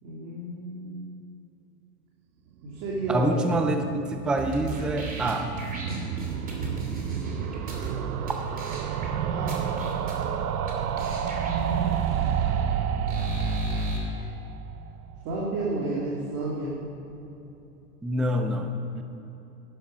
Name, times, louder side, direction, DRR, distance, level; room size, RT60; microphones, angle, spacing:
voice 1, 0.0-1.1 2.6-3.4 9.3-9.6 11.4-12.7 15.2-16.8, right 2 dB, 50° right, -7 dB, 2.9 m, -32 dB
sound 1, 2.7-15.7 16.0-16.1 16.3-16.4 16.6-16.7, right 8 dB, 85° right, 0.9 m, -31 dB
voice 2, 3.1-5.5 18.0-18.7 18.9-19.0, right 1 dB, ahead, 6 dB, 0.3 m, -26 dB
sound 2, 4.4-7.9 8.3-8.4 8.6-9.1 9.5-10.3 10.7-10.8 11.0-14.0, right 2 dB, 20° right, 2.7 m, -34 dB
12.0 x 10.0 x 5.4 m, 2.9 s
hypercardioid pair, 115°, 44 cm